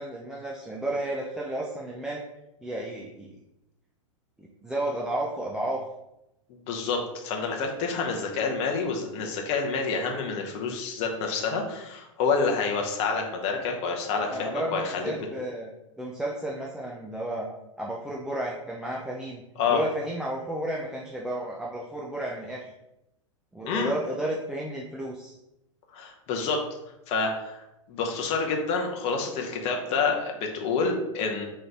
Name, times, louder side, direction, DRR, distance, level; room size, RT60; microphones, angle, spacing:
voice 1, 0.0-2.2 2.6-3.4 4.4-5.8 14.3-15.7 16.0-17.5 17.8-19.4 19.7-22.6 23.5-25.3, right 1 dB, 5° right, -4 dB, 0.4 m, -32 dB
voice 2, 6.7-15.1 19.6-19.8 23.6-23.9 25.9-26.6 27.1-31.5, left 4 dB, 40° left, 2 dB, 0.8 m, -28 dB
3.8 x 3.2 x 3.3 m, 0.89 s
figure-of-eight pair, 95°, 17 cm